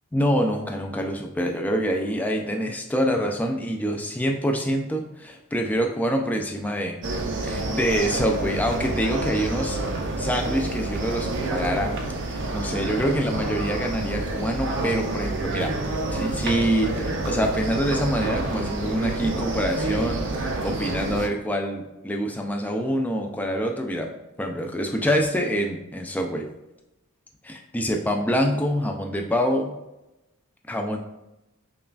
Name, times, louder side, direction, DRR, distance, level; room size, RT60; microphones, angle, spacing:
voice 1, 0.1-7.0 7.4-11.9 12.3-15.8 16.1-26.5 27.4-29.8 30.7-31.0, equal, 5° left, 2 dB, 0.3 m, -26 dB
sound 1, 7.0-21.3, right 2 dB, 55° right, 0.5 m, -28 dB
5.4 x 2.3 x 2.4 m, 0.95 s
head